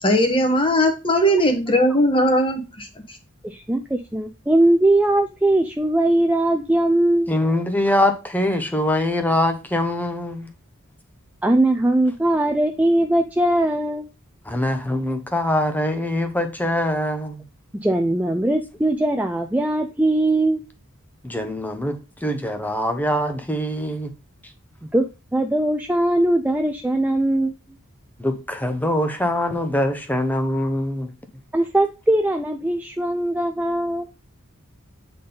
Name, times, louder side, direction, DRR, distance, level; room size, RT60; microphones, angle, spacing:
voice 1, 0.0-2.9, equal, 25° left, 1.3 m, -19 dB
voice 2, 3.4-7.3 11.4-14.1 17.7-20.6 24.9-25.1 25.3-27.5 31.5-34.1, right 1 dB, 5° right, 0.4 m, -20 dB
voice 3, 7.3-10.5 14.5-17.4 21.2-24.1 28.2-31.1, left 1 dB, 10° left, 0.8 m, -23 dB
8.4 x 3.9 x 3.9 m
head